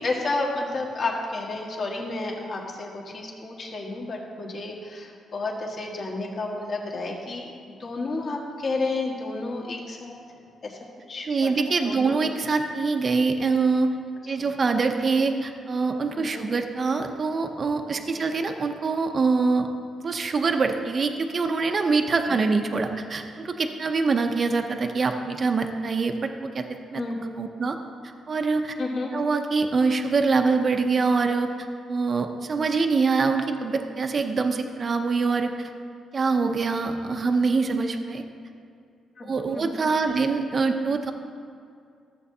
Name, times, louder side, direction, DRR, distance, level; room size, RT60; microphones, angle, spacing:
voice 1, 0.0-10.8 11.1-11.5 11.8-12.2 14.4-14.5 16.1-16.4 18.2-18.3 22.3-22.4 26.9-27.2 28.8-29.1 39.2-39.3 39.5-39.7, left 3 dB, 45° left, -1 dB, 1.4 m, -31 dB
voice 2, 11.3-13.9 14.3-19.7 20.0-26.6 26.9-27.0 27.4-27.8 28.0-28.7 29.1-31.5 31.9-35.7 36.1-38.2 39.2-41.1, right 4 dB, 40° right, 5 dB, 0.6 m, -24 dB
14.0 x 7.5 x 2.7 m, 2.4 s
cardioid pair, 110°, 0 cm